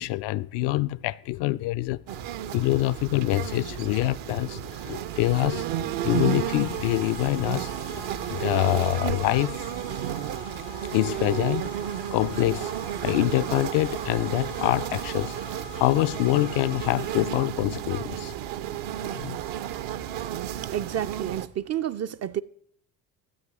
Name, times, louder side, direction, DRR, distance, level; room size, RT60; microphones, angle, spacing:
voice 1, 0.0-2.0 2.5-8.0 8.3-9.7 10.8-11.7 12.1-12.7 13.0-15.4 15.8-18.3 19.0-19.4, left 18 dB, 60° left, 0.5 m, -25 dB
sound 1, 2.1-21.5, right 12 dB, 60° right, 0.8 m, -32 dB
sound 2, 6.1-17.5, left 11 dB, 85° left, 1.7 m, -45 dB
voice 2, 20.7-22.4, right 10 dB, 35° right, 0.4 m, -30 dB
14.0 x 8.0 x 4.8 m
hypercardioid pair, 60°, 49 cm